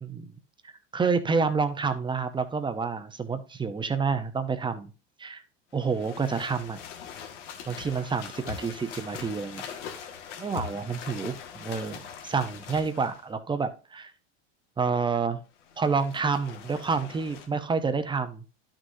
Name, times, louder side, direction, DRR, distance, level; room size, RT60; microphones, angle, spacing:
voice 1, 0.6-4.9 5.2-5.4 5.7-6.8 7.7-9.6 10.4-14.1 14.8-15.4 15.8-18.4, right 5 dB, 15° right, 10 dB, 0.8 m, -28 dB
sound 1, 5.8-13.3 15.5-17.5, left 7 dB, 85° left, 1.9 m, -42 dB
11.0 x 6.4 x 2.7 m, 0.34 s
supercardioid pair, 125°, 35 cm